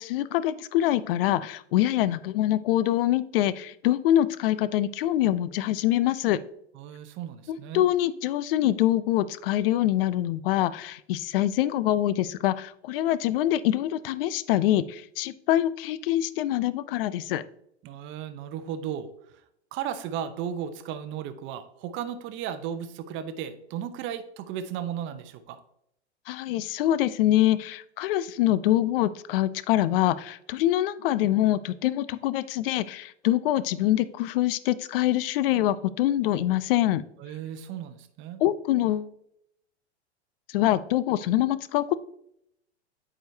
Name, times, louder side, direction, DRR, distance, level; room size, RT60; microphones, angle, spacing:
voice 1, 0.0-6.4 7.5-17.4 26.3-37.0 38.4-39.1 40.5-41.9, left 13 dB, 55° left, 16 dB, 0.5 m, -25 dB
voice 2, 6.7-7.9 17.8-19.1 19.7-25.6 37.2-38.4, right 9 dB, 35° right, 10 dB, 0.8 m, -35 dB
8.8 x 5.0 x 2.7 m, 0.73 s
hypercardioid pair, 105°, 34 cm